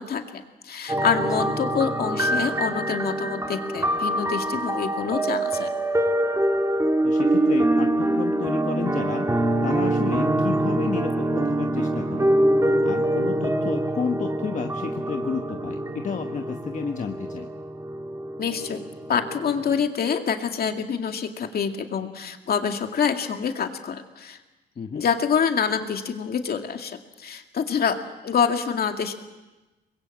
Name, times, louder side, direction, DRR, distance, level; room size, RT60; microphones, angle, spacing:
voice 1, 0.0-5.7 18.4-18.8 19.1-24.4 24.9-28.0 28.2-29.1, left 7 dB, 60° left, 5 dB, 2.3 m, -26 dB
sound 1, 0.9-19.8, right 1 dB, 15° right, 1.9 m, -25 dB
voice 2, 7.0-9.3 9.6-12.3 12.8-17.5 24.8-25.0, left 6 dB, 45° left, 4 dB, 1.3 m, -31 dB
24.5 x 21.5 x 7.8 m, 1.1 s
cardioid pair, 105°, 18 cm